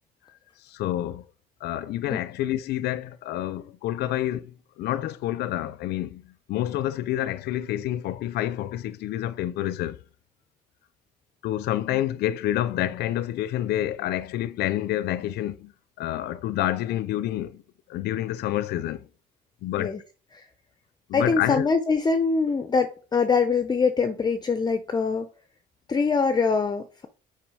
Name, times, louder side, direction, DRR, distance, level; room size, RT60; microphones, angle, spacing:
voice 1, 0.6-1.3 1.6-10.0 11.4-15.7 16.0-17.6 17.9-19.1 19.6-19.9 21.1-21.7, left 13 dB, 75° left, 0.5 m, -28 dB
voice 2, 21.1-25.3 25.9-27.1, left 4 dB, 25° left, 0.6 m, -23 dB
6.1 x 4.8 x 4.8 m
cardioid pair, 110°, 17 cm